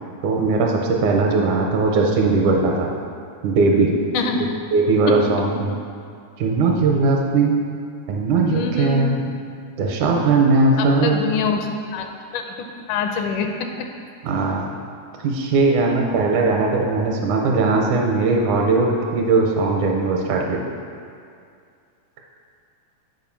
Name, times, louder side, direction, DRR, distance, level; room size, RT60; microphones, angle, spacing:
voice 1, 0.2-2.9 3.4-4.0 4.7-5.8 6.4-7.6 8.1-9.3 9.8-11.2 14.2-14.7 15.2-20.6, right 3 dB, 80° right, 0 dB, 2.1 m, -19 dB
voice 2, 4.1-4.5 8.5-9.2 10.8-12.1 12.3-12.5 12.9-13.5, left 5 dB, 80° left, 4 dB, 2.1 m, -25 dB
8.0 x 4.6 x 5.8 m, 2.3 s
omnidirectional pair, 3.7 m